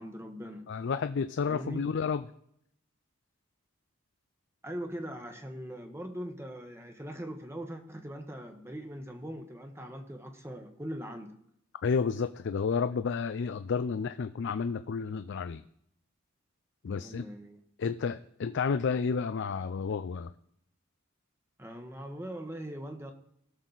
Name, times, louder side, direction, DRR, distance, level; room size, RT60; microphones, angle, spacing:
voice 1, 0.0-0.7 1.4-1.8 4.6-11.3 16.8-17.6 21.6-23.1, equal, 15° right, 5 dB, 1.0 m, -41 dB
voice 2, 0.7-2.2 11.8-15.6 16.8-17.3 17.8-20.3, left 5 dB, 60° left, 11 dB, 0.4 m, -31 dB
18.0 x 6.3 x 4.0 m, 0.74 s
head